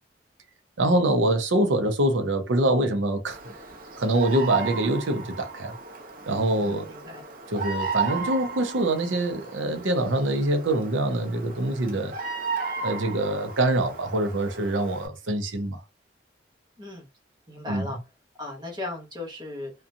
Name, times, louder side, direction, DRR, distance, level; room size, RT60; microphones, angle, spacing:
voice 1, 0.8-3.4 4.0-5.8 6.3-6.8 7.5-12.1 12.8-15.8 17.7-17.9, right 1 dB, 85° right, 0.6 m, -24 dB
Bird vocalization bird call bird song, 3.3-15.1, right 5 dB, 45° right, 0.6 m, -34 dB
voice 2, 6.5-7.2 16.8-17.1 17.5-18.0 18.4-19.7, left 2 dB, 20° right, 1.0 m, -36 dB
2.5 x 2.3 x 2.6 m
head